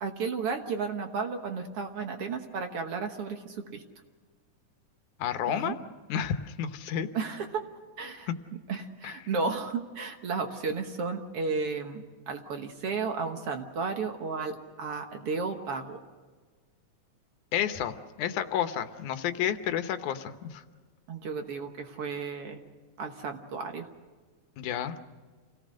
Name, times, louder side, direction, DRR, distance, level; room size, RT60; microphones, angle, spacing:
voice 1, 0.0-3.8 5.5-5.8 7.1-7.6 8.0-8.3 8.7-16.0 21.1-22.6 23.0-23.9, right 4 dB, 55° right, 5 dB, 1.9 m, -33 dB
voice 2, 5.2-5.7 6.1-7.1 8.3-8.4 9.0-9.2 17.5-20.6 24.6-25.0, left 9 dB, 80° left, 9 dB, 2.4 m, -31 dB
27.5 x 18.0 x 6.4 m, 1.4 s
omnidirectional pair, 3.5 m